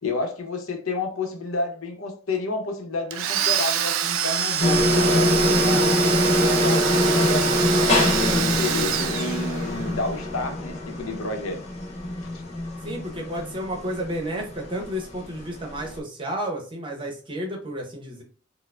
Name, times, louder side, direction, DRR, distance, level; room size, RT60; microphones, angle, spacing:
voice 1, 0.0-6.0 6.4-11.6 12.2-12.4, left 3 dB, 90° left, 0.7 m, -30 dB
Domestic sounds home sounds, 3.1-9.9, right 9 dB, 85° right, 0.3 m, -26 dB
sound 1, 4.6-16.0, left 1 dB, 30° left, 0.6 m, -24 dB
voice 2, 12.8-18.2, equal, 25° right, 0.7 m, -31 dB
4.4 x 2.0 x 2.3 m
head